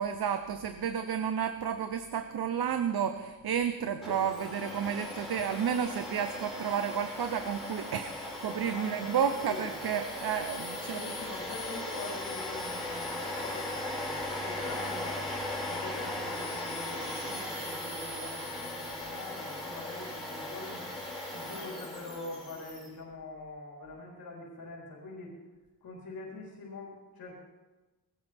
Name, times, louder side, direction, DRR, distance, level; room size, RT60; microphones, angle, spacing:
voice 1, 0.0-11.0, right 8 dB, 75° right, 8 dB, 0.9 m, -31 dB
Domestic sounds home sounds, 4.0-22.9, left 1 dB, ahead, 4.9 m, -38 dB
voice 2, 8.7-9.7 10.7-20.9 21.3-25.3 25.8-27.4, left 2 dB, 70° left, -3 dB, 4.0 m, -44 dB
20.0 x 16.5 x 3.6 m, 1.2 s
wide cardioid pair, 165°, 37 cm